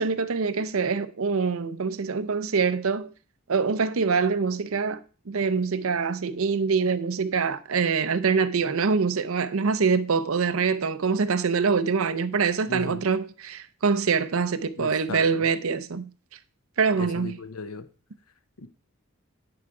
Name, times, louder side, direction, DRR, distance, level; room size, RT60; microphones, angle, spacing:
voice 1, 0.0-3.1 3.5-16.1 16.8-17.4, right 5 dB, 70° right, 0.6 m, -25 dB
voice 2, 12.7-13.1 14.8-15.5 16.9-17.9 18.6-18.7, left 3 dB, 90° left, 0.9 m, -36 dB
9.8 x 4.8 x 4.8 m
head